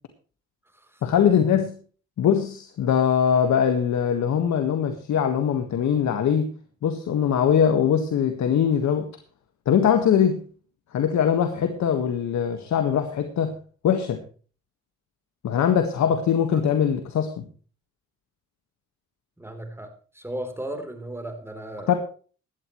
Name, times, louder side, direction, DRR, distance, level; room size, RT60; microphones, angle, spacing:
voice 1, 1.0-1.8 2.2-6.5 6.8-9.1 9.7-10.4 10.9-13.5 13.8-14.2 15.4-17.4 21.9-22.0, left 8 dB, 65° left, 7 dB, 1.7 m, -22 dB
voice 2, 19.4-22.0, right 1 dB, 10° right, 6 dB, 3.6 m, -36 dB
16.0 x 12.0 x 3.2 m, 0.40 s
cardioid pair, 90°, 30 cm